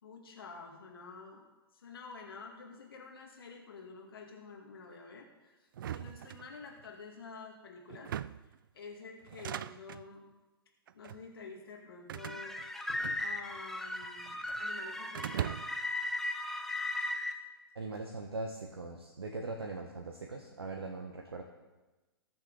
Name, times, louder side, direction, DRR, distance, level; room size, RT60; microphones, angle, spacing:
voice 1, 0.0-1.4 1.7-8.1 8.7-10.3 10.9-12.5 13.2-15.6 19.6-19.7, left 4 dB, 65° left, 0 dB, 2.2 m, -49 dB
sound 1, 5.7-6.9 7.9-8.6 9.2-10.1 10.9-11.3 12.1-13.6 13.9-14.6 15.1-15.9, right 10 dB, 55° right, 0.4 m, -40 dB
sound 2, 12.2-17.3, left 2 dB, ahead, 0.8 m, -37 dB
voice 2, 17.7-21.4, right 3 dB, 75° right, 2 dB, 1.3 m, -40 dB
20.0 x 6.7 x 4.0 m, 1.1 s
figure-of-eight pair, 115°, 13 cm